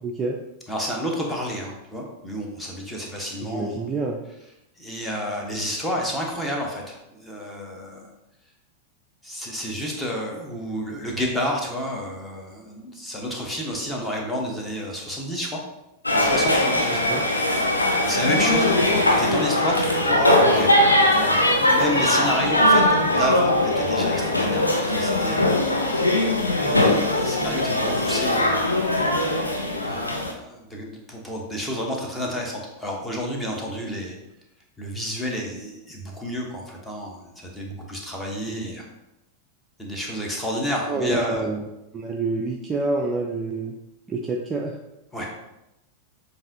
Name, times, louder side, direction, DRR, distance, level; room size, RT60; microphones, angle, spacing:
voice 1, 0.0-0.4 3.4-4.2 17.1-17.2 26.5-26.7 38.5-38.7 40.9-41.7 41.9-43.7 44.1-44.8, right 3 dB, 20° right, 0 dB, 0.4 m, -27 dB
voice 2, 0.7-3.8 4.8-8.1 9.2-15.6 16.1-17.2 18.0-25.5 26.6-28.6 29.8-34.2 34.8-38.9 39.8-41.4 45.1-45.3, equal, 10° left, -1 dB, 0.9 m, -30 dB
sound 1, 16.1-30.3, left 1 dB, 85° left, 0.6 m, -20 dB
7.2 x 2.6 x 2.6 m, 0.92 s
figure-of-eight pair, 90°, 0 cm